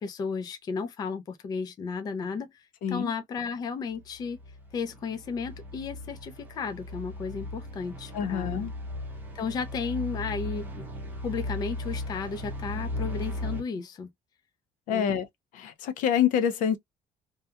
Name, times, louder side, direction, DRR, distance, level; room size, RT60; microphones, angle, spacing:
voice 1, 0.0-4.4 4.7-8.6 9.3-10.8 11.2-14.1 14.9-15.1, left 5 dB, 30° left, 0.4 m, -34 dB
sound 1, 3.9-13.6, left 2 dB, 15° right, 0.6 m, -37 dB
voice 2, 8.1-8.7 14.9-15.3 15.5-16.8, left 8 dB, 75° left, 0.5 m, -26 dB
2.8 x 2.3 x 2.2 m
cardioid pair, 175°, 14 cm